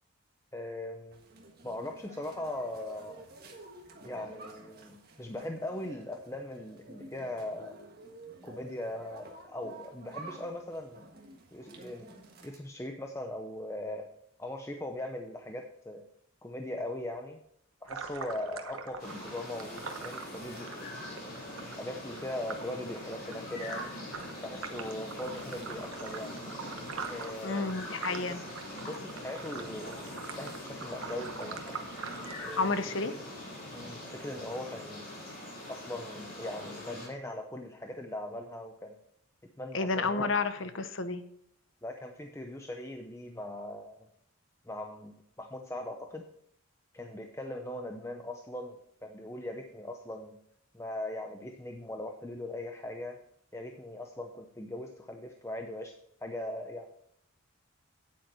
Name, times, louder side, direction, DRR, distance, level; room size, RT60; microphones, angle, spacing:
voice 1, 0.5-1.3 1.6-3.3 4.0-7.8 8.4-11.0 11.5-14.1 14.4-16.1 16.4-17.4 17.8-20.9 21.8-23.9 24.4-26.4 27.1-27.7 28.3-28.4 28.8-31.8 32.4-32.7 33.7-35.1 35.7-39.0 39.6-40.3 41.8-44.0 44.7-46.3 46.9-50.4 50.7-53.2 53.5-55.9 56.2-56.9, left 1 dB, 15° left, 3 dB, 0.6 m, -40 dB
sound 1, 1.1-12.6, right 2 dB, 45° right, 1.5 m, -50 dB
sound 2, 17.9-33.1, right 5 dB, 80° right, 1.1 m, -44 dB
sound 3, 19.0-37.1, left 1 dB, 40° left, 4.3 m, -43 dB
voice 2, 27.4-28.4 32.6-33.1 39.7-41.2, left 3 dB, 60° left, 11 dB, 0.8 m, -30 dB
9.4 x 8.3 x 4.5 m, 0.68 s
head